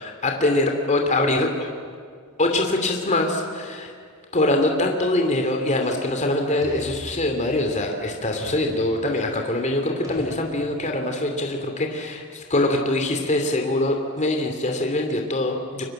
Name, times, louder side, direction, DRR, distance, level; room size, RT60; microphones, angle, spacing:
voice 1, 0.0-1.5 2.4-3.9 4.3-15.8, left 2 dB, 35° left, 3 dB, 2.8 m, -23 dB
sound 1, 5.8-6.2 6.6-7.9 8.3-9.4 10.0-11.1, equal, 15° right, 6.4 m, -42 dB
30.0 x 25.5 x 7.8 m, 2.2 s
head